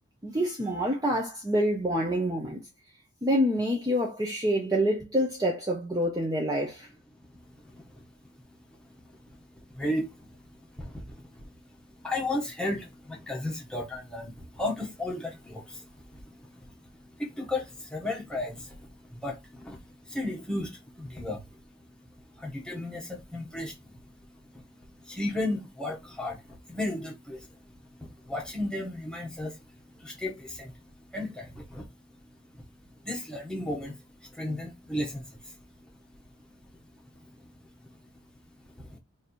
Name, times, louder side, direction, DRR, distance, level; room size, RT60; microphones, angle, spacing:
voice 1, 0.2-2.6 3.2-6.9, equal, 15° right, 0.7 m, -27 dB
voice 2, 7.2-39.0, left 1 dB, 5° left, 1.1 m, -36 dB
3.2 x 2.6 x 4.2 m
head